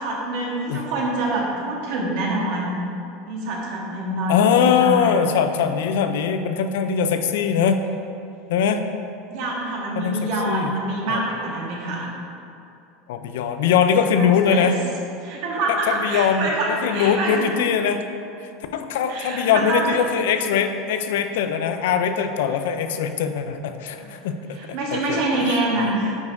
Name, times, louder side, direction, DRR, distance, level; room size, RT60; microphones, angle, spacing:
voice 1, 0.0-2.8 3.3-5.3 9.3-12.1 14.1-14.7 15.2-17.5 19.1-20.0 24.0-24.3 24.6-26.2, right 2 dB, 55° right, -2 dB, 1.4 m, -26 dB
voice 2, 4.3-7.8 8.5-8.8 10.0-10.7 11.1-11.2 13.1-14.8 15.9-18.0 18.4-25.9, left 7 dB, 85° left, 8 dB, 0.5 m, -22 dB
9.3 x 5.4 x 2.6 m, 2.6 s
supercardioid pair, 170°, 0 cm